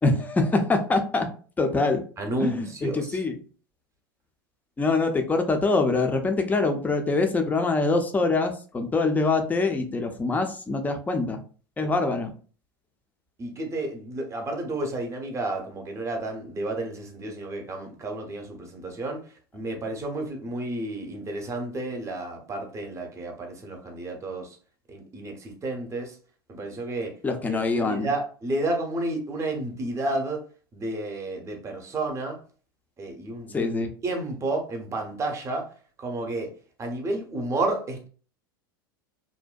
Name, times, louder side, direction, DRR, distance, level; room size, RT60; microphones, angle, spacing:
voice 1, 0.0-1.3 1.6-2.0 2.4-3.4 4.8-11.4 11.8-12.3 27.2-28.1 33.5-33.9, left 3 dB, 15° left, 5 dB, 0.5 m, -24 dB
voice 2, 2.2-3.2 13.4-19.2 19.5-24.6 24.9-26.2 26.5-27.1 27.8-30.4 30.7-32.4 33.0-33.7 34.0-35.7 36.0-36.5 36.8-38.1, right 2 dB, 25° right, 3 dB, 0.7 m, -31 dB
2.6 x 2.1 x 2.3 m, 0.40 s
hypercardioid pair, 85°, 12 cm